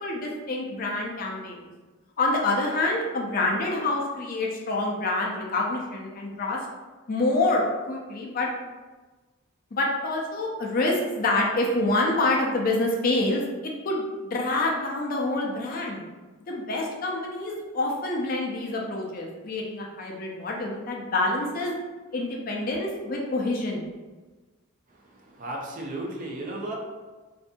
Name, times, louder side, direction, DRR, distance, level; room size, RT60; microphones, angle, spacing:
voice 1, 0.0-1.7 2.2-6.6 7.1-8.5 9.7-16.0 16.5-21.7 22.1-23.9, left 2 dB, 45° left, -1 dB, 0.4 m, -27 dB
voice 2, 24.9-26.7, right 1 dB, 40° right, -1 dB, 0.4 m, -35 dB
2.6 x 2.5 x 2.2 m, 1.3 s
head